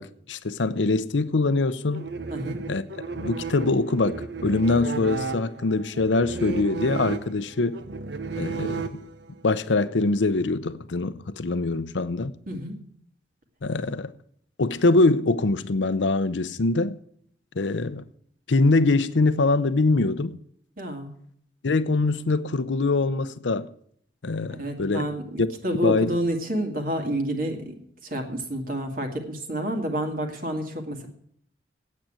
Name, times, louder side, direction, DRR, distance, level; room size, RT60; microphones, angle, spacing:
voice 1, 0.0-2.1 2.7-2.8 3.2-7.8 8.4-9.0 9.4-12.3 13.6-14.1 14.6-17.0 17.6-18.0 18.5-20.4 21.6-23.7 24.2-25.0 25.4-25.5 25.8-26.2, left 3 dB, 85° left, 0.7 m, -23 dB
sound 1, 1.9-9.4, right 4 dB, 70° right, 0.9 m, -34 dB
voice 2, 2.3-2.6 12.5-12.7 20.8-21.1 24.6-27.8 28.0-31.1, right 1 dB, 50° right, 2.2 m, -29 dB
9.1 x 8.6 x 8.8 m
head